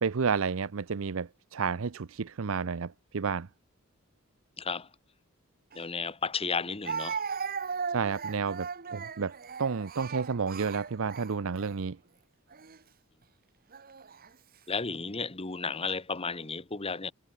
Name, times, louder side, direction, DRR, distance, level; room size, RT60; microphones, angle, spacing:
voice 1, 0.0-3.5 7.9-9.3 9.6-12.0, right 5 dB, 65° right, 0.6 m, -31 dB
voice 2, 4.6-4.9 5.7-7.2 14.7-17.1, left 4 dB, 25° left, 1.4 m, -33 dB
Speech, 5.7-5.8 6.8-11.7 12.5-12.8 13.7-14.3, right 6 dB, 45° right, 1.2 m, -37 dB
head